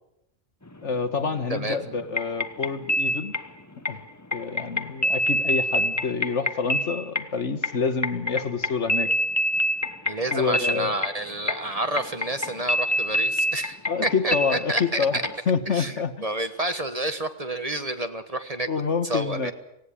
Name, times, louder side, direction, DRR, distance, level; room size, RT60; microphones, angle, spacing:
sound 1, 0.7-1.5 1.8-7.3 7.6-14.9 15.2-15.4, left 1 dB, 15° left, 0.9 m, -26 dB
voice 1, 0.8-3.3 3.9-4.0 4.3-9.1 10.3-10.9 13.9-15.2 15.5-16.1 18.7-19.5, left 5 dB, 70° left, 10 dB, 1.7 m, -27 dB
voice 2, 10.0-15.2 15.7-18.7 19.0-19.5, right 1 dB, 30° right, 9 dB, 1.4 m, -29 dB
18.5 x 17.0 x 9.9 m, 0.83 s
omnidirectional pair, 1.3 m